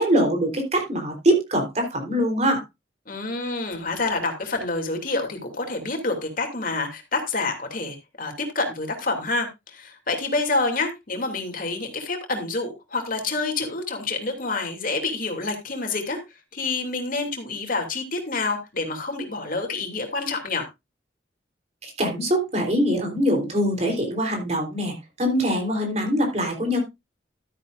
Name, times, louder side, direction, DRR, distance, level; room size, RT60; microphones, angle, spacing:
voice 1, 0.0-2.6 21.8-26.8, equal, 40° right, 3 dB, 3.7 m, -23 dB
voice 2, 3.1-16.2 16.5-20.7, left 3 dB, 50° left, 4 dB, 2.7 m, -28 dB
12.5 x 10.0 x 2.5 m, 0.23 s
head